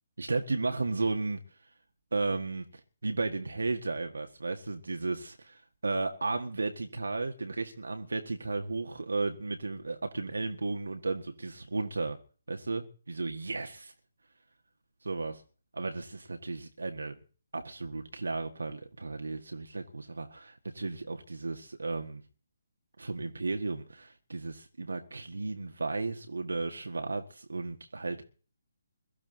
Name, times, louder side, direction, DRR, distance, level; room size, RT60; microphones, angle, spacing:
voice 1, 0.2-1.7 2.1-12.2 12.5-13.9 15.0-15.4 15.7-17.2 17.5-22.2 23.0-28.3, right 3 dB, 70° right, 1.7 m, -34 dB
22.5 x 14.0 x 4.0 m
figure-of-eight pair, 140°, 0 cm